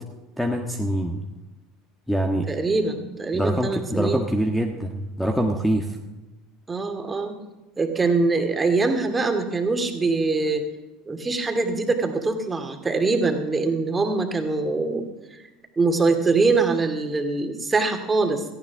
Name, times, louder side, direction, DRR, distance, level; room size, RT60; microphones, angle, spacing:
voice 1, 0.4-1.2 2.1-2.5 3.3-6.0, equal, 5° left, 2 dB, 1.5 m, -24 dB
voice 2, 2.5-4.2 6.7-7.3 7.8-10.7 11.1-15.4 15.8-18.4, right 3 dB, 20° right, 5 dB, 2.5 m, -23 dB
17.5 x 14.5 x 3.6 m, 1.1 s
hypercardioid pair, 80°, 0 cm